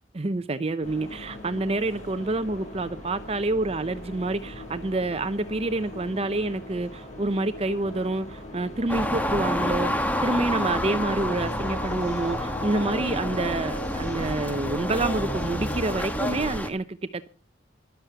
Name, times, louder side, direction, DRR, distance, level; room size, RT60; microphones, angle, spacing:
voice 1, 0.1-17.3, right 2 dB, 35° right, 0.6 m, -28 dB
sound 1, 0.8-16.0, equal, 40° left, 6.3 m, -39 dB
sound 2, 8.9-16.7, left 1 dB, 10° left, 1.4 m, -29 dB
13.0 x 12.0 x 6.8 m
head